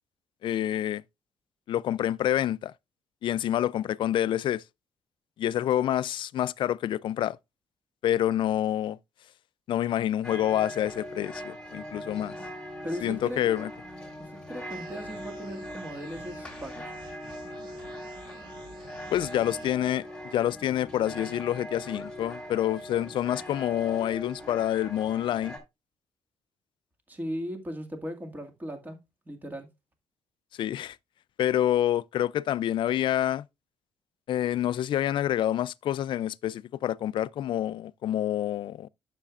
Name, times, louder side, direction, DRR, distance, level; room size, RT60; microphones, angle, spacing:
voice 1, 0.4-1.0 1.7-2.7 3.2-4.6 5.4-7.4 8.0-9.0 9.7-12.4 13.0-13.7 19.1-20.0 20.3-25.6 30.6-31.0 31.4-33.5 34.3-38.9, left 11 dB, 55° left, 0.4 m, -27 dB
sound 1, 10.2-25.6, equal, 10° left, 3.6 m, -41 dB
voice 2, 12.8-13.5 14.3-16.9 27.1-29.0 29.3-29.7, equal, 20° right, 2.0 m, -37 dB
sound 2, 14.7-19.7, right 3 dB, 55° right, 5.1 m, -50 dB
11.5 x 6.6 x 2.4 m
cardioid pair, 150°, 10 cm